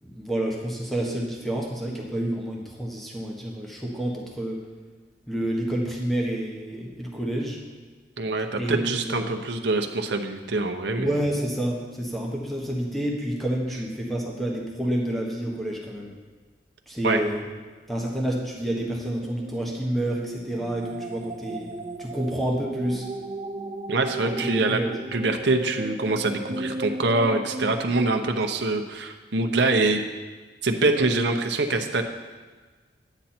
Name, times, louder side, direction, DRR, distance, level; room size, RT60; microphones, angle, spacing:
voice 1, 0.0-4.6 5.3-7.6 8.6-9.4 11.0-16.1 16.9-17.4 17.9-21.7 22.0-23.1 24.2-25.0, right 1 dB, ahead, -2 dB, 1.3 m, -29 dB
voice 2, 8.2-11.2 17.0-17.2 23.9-24.8 25.1-30.0 30.6-32.0, right 2 dB, 70° right, 5 dB, 0.8 m, -24 dB
sound 1, 19.1-27.9, right 2 dB, 30° right, 0.4 m, -35 dB
10.5 x 9.0 x 4.4 m, 1.4 s
head